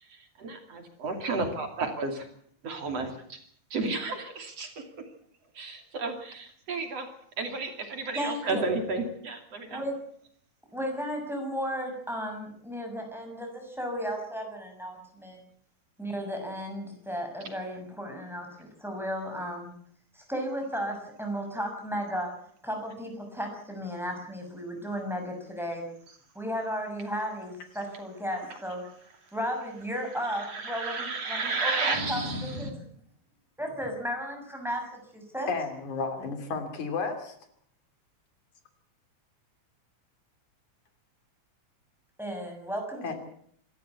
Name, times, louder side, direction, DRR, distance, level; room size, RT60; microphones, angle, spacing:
voice 1, 0.1-2.3 2.6-3.4 3.7-4.8 5.6-7.1 7.4-9.8 30.3-32.7, right 3 dB, 60° right, 5 dB, 3.8 m, -32 dB
voice 2, 8.1-8.6 9.7-10.0 10.7-15.4 16.0-19.8 20.1-22.3 22.6-25.9 26.3-28.9 29.3-32.8 33.6-35.5 42.2-43.1, equal, ahead, 2 dB, 6.5 m, -34 dB
voice 3, 35.5-37.4 43.0-43.1, left 4 dB, 85° left, 7 dB, 4.3 m, -32 dB
27.0 x 13.0 x 8.3 m, 0.63 s
omnidirectional pair, 3.3 m